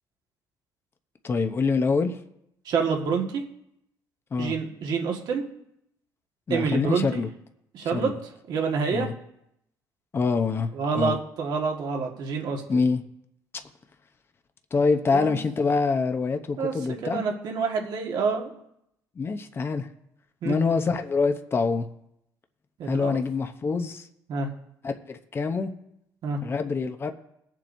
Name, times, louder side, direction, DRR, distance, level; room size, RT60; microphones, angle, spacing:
voice 1, 1.2-2.2 4.3-4.5 6.5-7.3 7.9-8.1 8.9-9.1 10.1-11.2 12.7-13.0 14.7-17.2 19.2-19.9 20.4-21.9 22.9-24.0 24.8-25.7 26.4-27.1, left 4 dB, 30° left, 6 dB, 0.8 m, -25 dB
voice 2, 2.7-3.4 4.4-5.4 6.5-7.2 7.7-8.1 8.5-9.1 10.7-12.6 15.1-15.4 16.6-16.7 17.0-18.5 20.4-20.6 22.8-23.1 24.3-24.5 26.2-26.4, right 5 dB, 65° right, 1 dB, 1.8 m, -27 dB
21.0 x 7.5 x 2.7 m, 0.79 s
cardioid pair, 110°, 8 cm